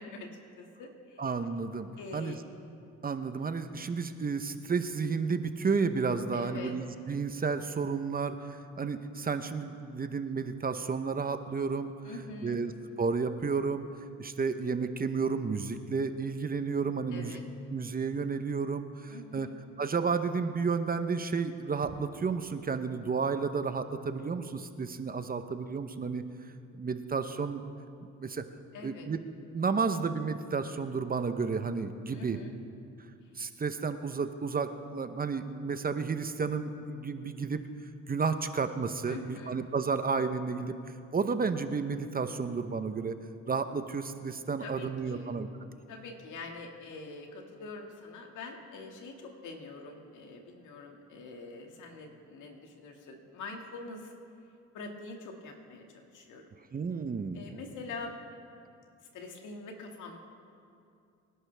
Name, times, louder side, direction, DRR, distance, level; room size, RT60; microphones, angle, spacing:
voice 1, 0.0-1.3 2.0-2.4 6.3-6.7 12.0-12.6 17.1-17.5 19.1-19.6 28.7-29.1 32.1-32.6 39.1-39.6 44.6-45.3 45.9-54.1 54.7-56.5 57.3-58.2 59.1-60.2, left 3 dB, 80° left, 2 dB, 2.0 m, -44 dB
voice 2, 1.2-1.9 2.1-2.4 3.0-11.9 12.4-12.7 13.0-13.9 14.2-17.4 17.7-19.5 19.8-26.2 26.7-27.6 28.2-28.4 28.8-29.2 29.5-32.4 33.4-37.6 38.1-40.7 41.1-43.1 43.5-45.5 56.7-57.4, right 5 dB, 30° right, 9 dB, 0.8 m, -32 dB
24.5 x 11.0 x 3.4 m, 2.5 s
cardioid pair, 90°, 30 cm